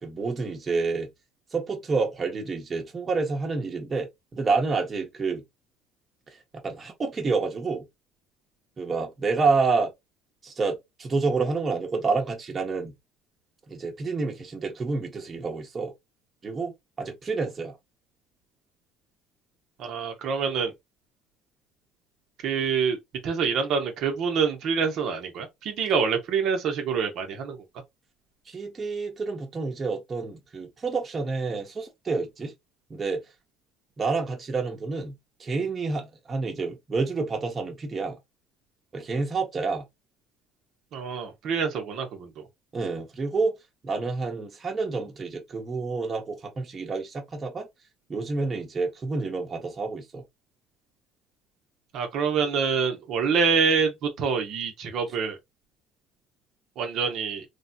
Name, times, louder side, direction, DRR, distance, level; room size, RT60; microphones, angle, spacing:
voice 1, 0.0-1.1 1.5-5.4 6.3-6.4 6.6-7.9 8.8-9.9 10.4-12.9 13.7-15.9 16.4-17.8 28.5-32.5 32.9-33.2 34.0-35.1 35.4-38.2 38.9-39.8 42.7-43.5 43.8-47.7 48.1-50.2, right 4 dB, 30° right, 0.8 m, -28 dB
voice 2, 19.8-20.7 22.4-23.0 23.2-27.6 40.9-42.4 51.9-55.4 56.8-57.4, right 6 dB, 60° right, 0.7 m, -26 dB
3.2 x 2.1 x 2.6 m
cardioid pair, 110°, 0 cm